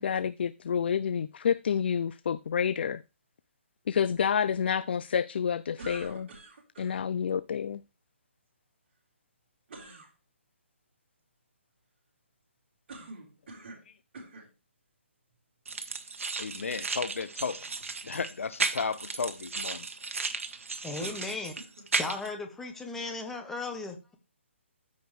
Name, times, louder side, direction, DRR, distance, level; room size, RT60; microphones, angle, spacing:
voice 1, 0.0-3.0 3.9-6.3 6.8-7.8, left 7 dB, 55° left, 0.4 m, -29 dB
sound 1, 5.8-7.0 9.7-10.1 12.9-13.9 14.1-14.5 15.3-15.4 21.0-21.9, right 3 dB, 50° right, 3.9 m, -46 dB
sound 2, 15.7-22.3, right 4 dB, 85° right, 1.3 m, -35 dB
voice 2, 16.4-17.6 18.0-19.9, left 5 dB, 80° left, 0.9 m, -34 dB
voice 3, 20.8-21.5 22.0-24.1, left 3 dB, 5° left, 0.9 m, -36 dB
13.5 x 5.2 x 3.2 m
hypercardioid pair, 165°, 7 cm